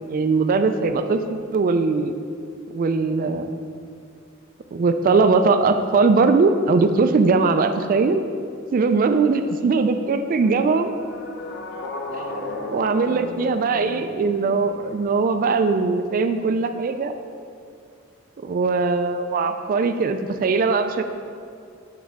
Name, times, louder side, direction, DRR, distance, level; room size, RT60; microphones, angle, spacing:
voice 1, 0.1-2.1 2.7-3.6 4.7-8.2 8.7-10.9 12.1-12.2 12.7-17.1 18.4-21.0, right 4 dB, 45° right, 8 dB, 0.3 m, -20 dB
sound 1, 10.4-15.1, left 2 dB, 60° left, 0.7 m, -34 dB
8.5 x 4.8 x 3.4 m, 2.4 s
head